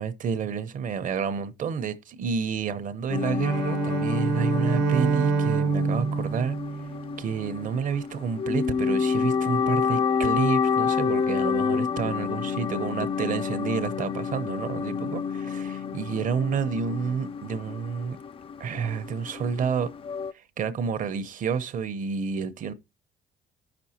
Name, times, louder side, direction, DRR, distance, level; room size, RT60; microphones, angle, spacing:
voice 1, 0.0-6.6 7.2-18.2 18.6-19.9 20.3-22.7, right 6 dB, 50° right, 0.8 m, -29 dB
sound 1, 3.1-20.3, left 6 dB, 35° left, 0.4 m, -29 dB
Bowed string instrument, 3.4-7.6, right 6 dB, 70° right, 1.2 m, -27 dB
15.5 x 6.1 x 2.8 m
cardioid pair, 110°, 17 cm